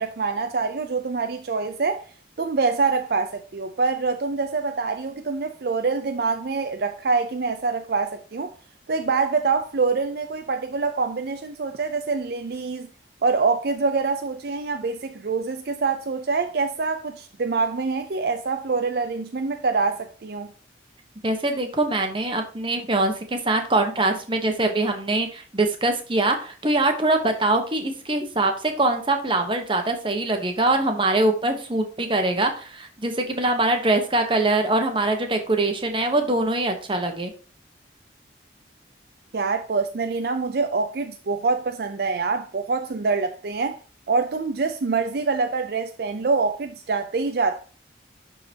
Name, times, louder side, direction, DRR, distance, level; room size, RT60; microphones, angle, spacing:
voice 1, 0.0-2.0 2.4-8.5 8.9-12.9 13.2-20.5 39.3-43.8 44.1-47.6, right 4 dB, 55° right, 0.5 m, -25 dB
voice 2, 21.2-37.3, right 2 dB, 25° right, 1.0 m, -23 dB
11.5 x 3.8 x 2.8 m
head